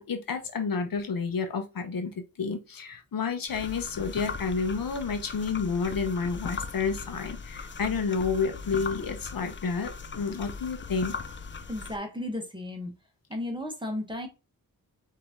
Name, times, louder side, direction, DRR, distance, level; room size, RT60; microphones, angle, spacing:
voice 1, 0.0-11.1, left 5 dB, 65° left, 0.9 m, -30 dB
sound 1, 3.5-12.0, left 5 dB, 35° left, 0.4 m, -39 dB
voice 2, 11.7-12.9 13.3-14.3, left 1 dB, 15° right, 1.2 m, -34 dB
5.1 x 2.9 x 3.5 m
wide cardioid pair, 105°, 36 cm